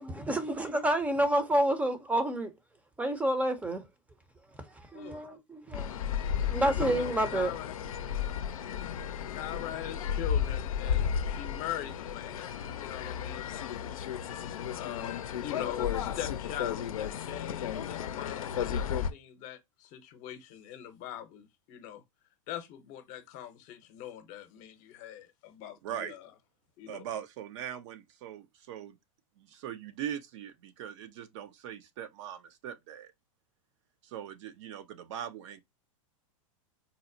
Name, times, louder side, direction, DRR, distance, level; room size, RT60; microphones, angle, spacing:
voice 1, 0.0-2.5 3.0-3.8 4.9-5.9 6.5-7.5, right 1 dB, 10° right, 0.6 m, -29 dB
sound 1, 5.7-19.1, left 8 dB, 85° left, 0.5 m, -33 dB
voice 2, 6.9-7.7 9.3-12.5 12.7-13.5 14.7-22.0 22.5-26.3 26.8-27.0, left 11 dB, 45° left, 0.8 m, -42 dB
voice 3, 25.8-26.2 26.9-29.0 29.4-33.1 34.0-35.6, right 9 dB, 60° right, 0.6 m, -41 dB
4.0 x 2.1 x 2.6 m
hypercardioid pair, 120°, 17 cm